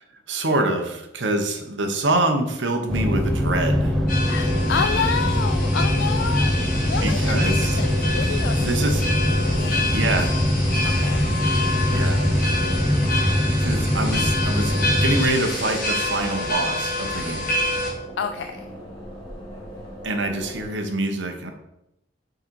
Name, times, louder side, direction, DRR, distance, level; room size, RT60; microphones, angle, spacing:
voice 1, 0.3-4.0 7.0-7.8 8.6-9.0 9.9-10.3 11.9-12.2 13.6-17.5 20.0-21.5, right 2 dB, 70° right, 4 dB, 1.0 m, -25 dB
sound 1, 2.8-20.7, equal, 20° left, 1.9 m, -39 dB
sound 2, 2.9-15.3, equal, ahead, 0.6 m, -22 dB
sound 3, 4.1-17.9, left 2 dB, 45° left, 1.8 m, -28 dB
voice 2, 4.2-8.6 9.5-10.2 10.8-11.3 18.2-18.7, left 6 dB, 65° left, 7 dB, 0.4 m, -29 dB
6.6 x 4.0 x 4.6 m, 0.85 s
head